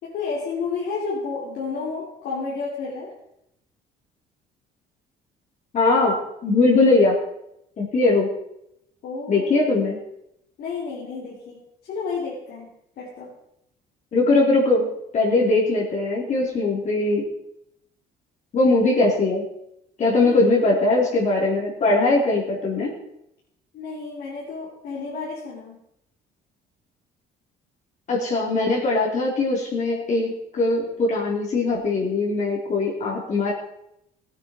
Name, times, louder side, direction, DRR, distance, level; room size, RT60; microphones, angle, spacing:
voice 1, 0.0-3.1 9.0-9.8 10.6-13.3 20.3-20.4 23.7-25.8, left 4 dB, 70° left, -6 dB, 3.5 m, -31 dB
voice 2, 5.7-7.2 7.8-8.3 9.3-10.0 14.1-17.3 18.5-19.4 20.0-22.9 28.1-33.5, left 2 dB, 45° left, -2 dB, 3.4 m, -20 dB
16.0 x 9.0 x 4.4 m, 0.79 s
cardioid pair, 110°, 17 cm